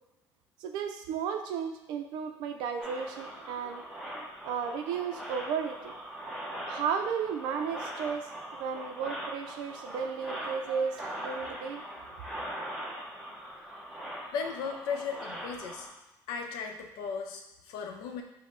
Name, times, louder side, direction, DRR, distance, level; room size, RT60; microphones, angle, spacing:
voice 1, 0.6-5.9 6.7-11.8, right 6 dB, 75° right, 5 dB, 0.4 m, -34 dB
sound 1, 2.8-15.9, equal, ahead, 0.8 m, -41 dB
voice 2, 14.3-15.9 16.3-18.2, left 6 dB, 85° left, 4 dB, 0.6 m, -36 dB
5.3 x 2.1 x 3.7 m, 0.97 s
cardioid pair, 165°, 8 cm